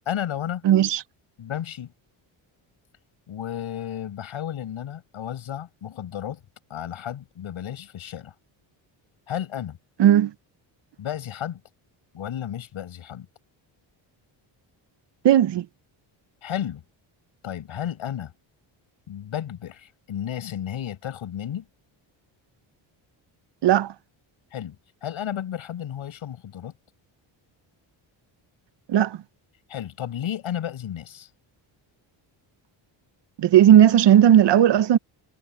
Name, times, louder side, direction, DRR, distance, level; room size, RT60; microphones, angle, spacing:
voice 1, 0.1-0.6 1.4-1.9 3.3-6.4 6.7-8.3 9.3-9.8 11.0-11.6 12.1-13.3 16.4-16.8 17.4-18.3 19.1-21.7 24.5-24.8 25.0-26.7 29.7-31.3, left 10 dB, 70° left, 6.3 m, -32 dB
voice 2, 0.6-1.0 10.0-10.3 15.2-15.7 23.6-23.9 28.9-29.2 33.4-35.0, right 11 dB, 55° right, 0.8 m, -16 dB
cardioid pair, 95°, 49 cm